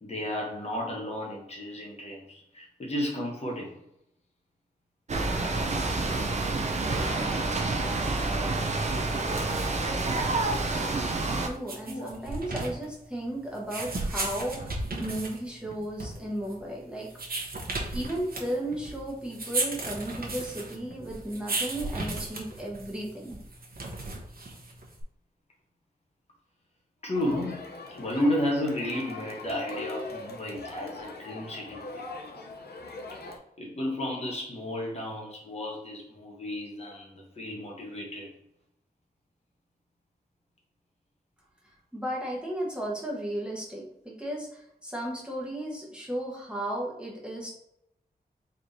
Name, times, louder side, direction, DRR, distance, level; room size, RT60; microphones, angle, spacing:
voice 1, 0.0-3.8 11.8-12.1 21.3-21.4 27.0-32.0 33.6-38.3, left 1 dB, 40° left, -2 dB, 1.0 m, -33 dB
sound 1, 5.1-11.5, right 2 dB, 45° right, 0.5 m, -28 dB
sound 2, 9.2-25.0, right 2 dB, 65° right, 0.9 m, -36 dB
voice 2, 11.4-17.1 17.9-23.4 41.9-47.5, right 1 dB, 5° right, -3 dB, 1.1 m, -34 dB
Crowd, 27.1-33.4, left 3 dB, 80° left, 0.6 m, -41 dB
4.4 x 3.3 x 2.6 m, 0.78 s
wide cardioid pair, 115°, 16 cm